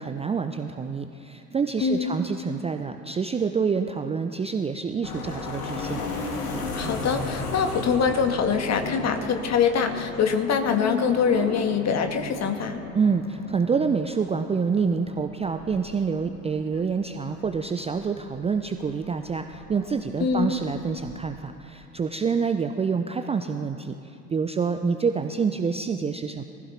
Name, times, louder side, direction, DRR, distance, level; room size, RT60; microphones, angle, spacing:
voice 1, 0.0-6.0 12.9-26.4, right 5 dB, 15° right, 7 dB, 0.5 m, -27 dB
voice 2, 1.8-2.2 6.7-12.8 20.2-20.6, left 6 dB, 35° left, 5 dB, 1.7 m, -24 dB
sound 1, 5.0-21.3, left 3 dB, 75° left, 2.0 m, -35 dB
22.5 x 15.5 x 3.4 m, 2.6 s
figure-of-eight pair, 65°, 46 cm